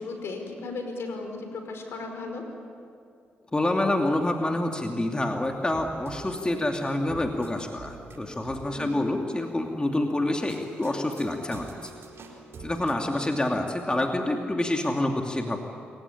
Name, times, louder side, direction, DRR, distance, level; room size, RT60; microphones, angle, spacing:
voice 1, 0.0-2.4 8.7-9.0, left 3 dB, 65° left, 4 dB, 5.0 m, -36 dB
voice 2, 3.5-11.9 12.6-15.6, left 1 dB, 20° left, 2 dB, 2.6 m, -27 dB
sound 1, 5.4-9.0 10.3-13.2, right 3 dB, 65° right, 4.3 m, -47 dB
27.5 x 16.0 x 10.0 m, 2.3 s
supercardioid pair, 50°, 5 cm